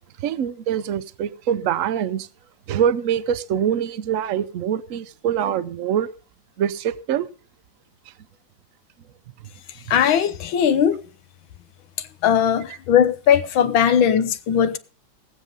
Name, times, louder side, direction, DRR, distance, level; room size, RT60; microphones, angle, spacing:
voice 1, 0.2-2.3 2.7-6.1 6.6-7.3 9.4-9.5, right 9 dB, 60° right, 0.9 m, -24 dB
voice 2, 9.9-11.0 12.2-14.8, left 8 dB, 80° left, 1.7 m, -18 dB
19.0 x 7.5 x 5.3 m
omnidirectional pair, 2.1 m